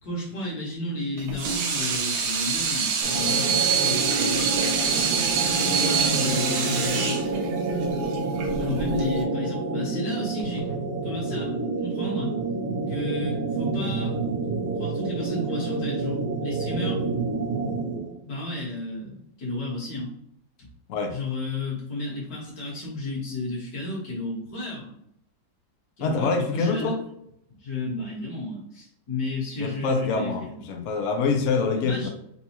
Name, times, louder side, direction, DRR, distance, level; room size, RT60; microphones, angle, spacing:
voice 1, 0.0-4.5 5.7-7.3 8.5-10.7 11.0-11.5 11.8-12.3 12.9-14.1 14.8-17.0 18.2-20.1 20.6-20.7 21.1-24.9 26.0-26.9 27.6-30.6 31.8-32.1, left 2 dB, 55° left, -5 dB, 1.7 m, -32 dB
Water tap faucet / Sink (filling or washing), 1.2-9.2, right 6 dB, 85° right, 1.3 m, -25 dB
sound 1, 3.0-18.1, right 3 dB, 70° right, 1.1 m, -28 dB
voice 2, 26.0-27.0 29.6-32.1, left 4 dB, 85° left, 3 dB, 0.7 m, -25 dB
4.1 x 2.2 x 2.9 m, 0.73 s
omnidirectional pair, 2.1 m